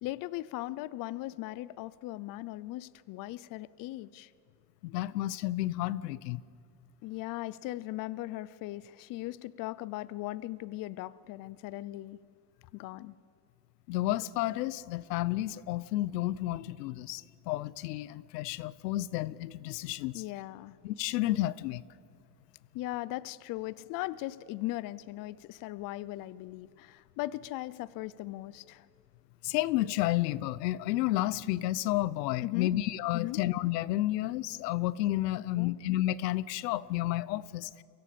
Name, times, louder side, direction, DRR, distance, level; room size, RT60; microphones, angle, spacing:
voice 1, 0.0-4.3 7.0-12.2 12.7-13.2 20.1-20.8 22.7-28.9 32.4-32.8 33.1-33.4 35.6-35.8, left 17 dB, 45° left, 0.7 m, -38 dB
voice 2, 4.8-6.4 13.9-20.2 20.8-21.8 29.4-37.7, left 15 dB, 90° left, 0.9 m, -31 dB
29.5 x 24.0 x 6.9 m
supercardioid pair, 130°, 47 cm